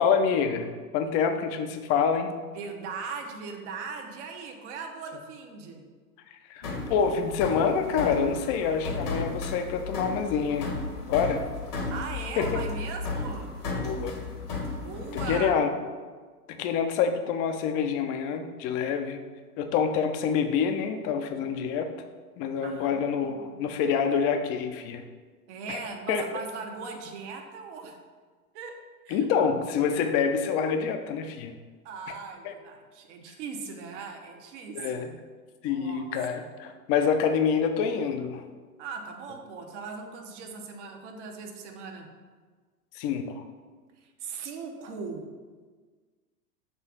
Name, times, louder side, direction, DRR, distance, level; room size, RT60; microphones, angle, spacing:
voice 1, 0.0-2.3 6.5-10.7 11.1-11.4 12.4-12.6 13.8-14.1 15.3-15.7 16.5-19.2 19.6-21.9 22.4-25.0 25.7-25.8 26.1-26.2 29.1-31.5 32.4-32.5 34.7-35.1 35.6-38.4 42.9-43.4, left 6 dB, 30° left, 7 dB, 0.6 m, -26 dB
voice 2, 2.5-5.9 11.9-13.5 14.8-15.5 22.6-23.8 25.5-28.0 28.5-29.3 31.8-35.2 35.7-36.1 38.8-42.1 44.0-45.3, right 5 dB, 50° right, 3 dB, 1.1 m, -39 dB
sound 1, 6.6-15.4, left 3 dB, 75° left, 1.6 m, -34 dB
6.8 x 3.3 x 5.9 m, 1.4 s
figure-of-eight pair, 95°, 47 cm